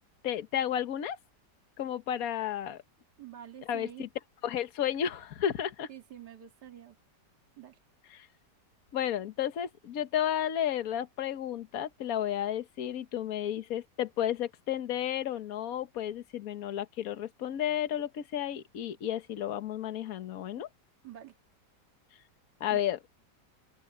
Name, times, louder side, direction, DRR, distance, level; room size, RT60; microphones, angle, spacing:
voice 1, 0.2-1.2 1.8-2.8 3.7-4.1 4.4-5.9 8.1-8.3 8.9-20.7 22.6-23.0, left 10 dB, 55° left, 1.5 m, -32 dB
voice 2, 3.2-4.0 5.9-7.0 7.6-7.8 21.0-21.3 22.7-22.8, right 11 dB, 65° right, 2.5 m, -47 dB
open air
omnidirectional pair, 1.9 m